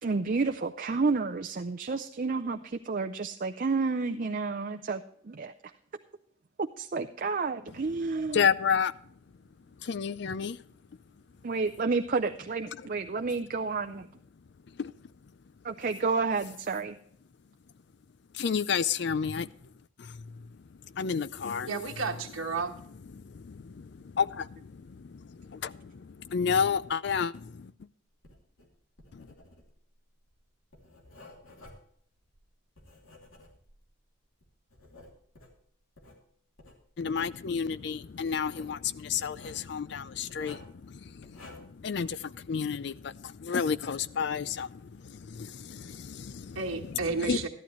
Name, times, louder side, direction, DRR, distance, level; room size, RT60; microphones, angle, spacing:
voice 1, 0.0-5.5 6.8-8.5 11.4-14.1 15.6-17.0, right 4 dB, 40° right, 0.5 m, -30 dB
voice 2, 8.2-9.1 9.8-10.6 12.8-12.9 14.7-14.9 18.3-19.7 20.0-21.7 23.1-27.7 29.1-29.3 37.0-47.5, left 6 dB, 55° left, 0.4 m, -32 dB
voice 3, 21.7-22.7 46.5-47.5, right 4 dB, 90° right, 1.3 m, -32 dB
Writing, 28.1-33.9 34.4-36.2 36.6-37.4 38.3-38.8 39.2-39.6 40.3-40.8 41.2-41.8, left 2 dB, 85° left, 2.8 m, -53 dB
13.5 x 11.5 x 3.1 m
head